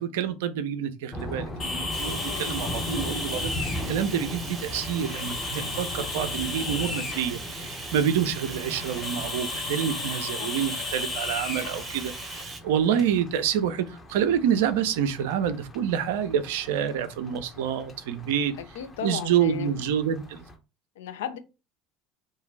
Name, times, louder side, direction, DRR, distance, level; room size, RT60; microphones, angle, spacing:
voice 1, 0.0-18.5 19.0-20.4, right 8 dB, 70° right, 0.4 m, -27 dB
sound 1, 1.1-20.6, left 1 dB, 20° left, 0.7 m, -39 dB
sound 2, 1.6-12.4, left 3 dB, 40° left, 1.1 m, -35 dB
Bathtub (filling or washing), 1.9-12.6, right 4 dB, 30° right, 0.7 m, -40 dB
voice 2, 2.1-2.7 10.4-10.5 18.7-19.7 21.0-21.4, left 9 dB, 75° left, 0.4 m, -36 dB
2.4 x 2.2 x 3.2 m
hypercardioid pair, 70°, 0 cm